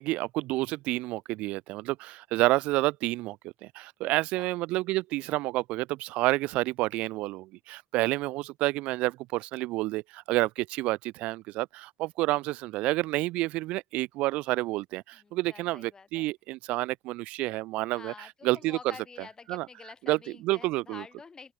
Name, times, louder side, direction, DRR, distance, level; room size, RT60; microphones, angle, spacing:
voice 1, 0.0-18.9 19.5-19.7 20.0-21.0, right 19 dB, 75° right, 0.6 m, -29 dB
voice 2, 15.1-16.3 18.0-21.5, left 5 dB, 35° left, 5.2 m, -48 dB
open air
hypercardioid pair, 65°, 2 cm